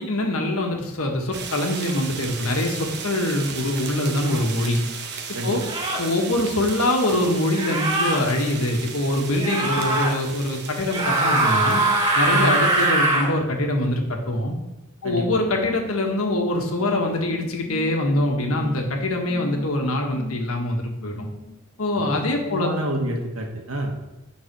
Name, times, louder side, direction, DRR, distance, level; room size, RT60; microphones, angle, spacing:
voice 1, 0.0-4.8 5.4-5.6 6.0-11.8 12.1-14.6 15.0-21.3 21.8-22.7, left 1 dB, 85° left, 2 dB, 1.4 m, -24 dB
sound 1, 1.3-12.9, right 6 dB, 55° right, 0.9 m, -36 dB
sound 2, 4.2-4.4 5.6-6.1 7.5-8.2 9.4-10.1 10.9-13.3, right 2 dB, 20° right, 1.6 m, -22 dB
voice 2, 15.0-15.4 22.0-23.9, right 1 dB, 85° right, 1 dB, 1.5 m, -28 dB
sound 3, 17.6-21.6, left 6 dB, 25° left, 2.5 m, -40 dB
9.0 x 4.1 x 5.9 m, 0.99 s
head